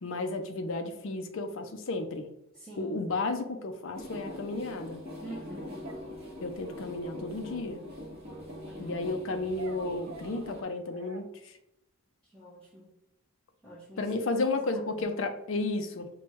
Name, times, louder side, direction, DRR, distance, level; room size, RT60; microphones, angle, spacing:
voice 1, 0.0-2.3 2.8-5.0 6.4-7.8 8.8-11.6 14.0-16.1, left 2 dB, 65° left, 6 dB, 0.5 m, -33 dB
voice 2, 2.5-3.1 5.2-5.8 8.6-9.0 12.2-12.9 13.6-14.2 14.5-15.1, right 1 dB, 5° left, -8 dB, 0.8 m, -47 dB
sound 1, 3.9-10.6, left 1 dB, 25° right, 1.2 m, -43 dB
sound 2, 4.1-4.2 5.8-6.8 9.6-11.3, right 4 dB, 65° right, 0.5 m, -48 dB
6.0 x 2.3 x 3.1 m, 0.85 s
head